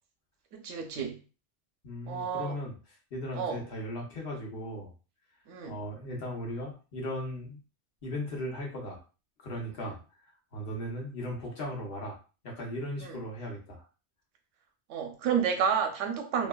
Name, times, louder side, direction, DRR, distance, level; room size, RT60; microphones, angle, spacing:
voice 1, 0.5-1.2 2.1-2.5 3.3-3.6 5.5-5.8 9.8-9.9 13.0-13.2 14.9-16.5, right 7 dB, 80° right, 4 dB, 0.9 m, -30 dB
voice 2, 1.8-2.7 3.1-4.9 5.6-7.6 8.0-9.0 9.4-10.0 10.5-12.2 12.4-13.8, equal, 60° left, -2 dB, 1.0 m, -37 dB
2.7 x 2.1 x 2.2 m, 0.34 s
omnidirectional pair, 1.2 m